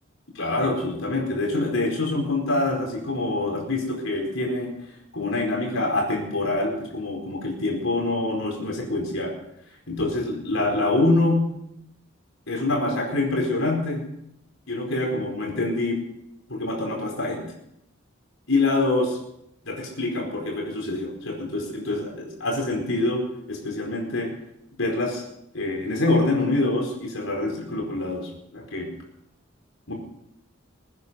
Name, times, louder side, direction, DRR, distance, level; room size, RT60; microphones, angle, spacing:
voice 1, 0.3-4.7 5.1-9.3 9.9-11.4 12.5-14.0 14.7-16.0 16.5-17.4 18.5-19.2 19.6-23.2 23.5-24.3 24.8-25.2 25.5-28.9 29.9-30.0, left 2 dB, 85° left, 0 dB, 4.6 m, -25 dB
22.0 x 9.6 x 6.4 m, 0.79 s
head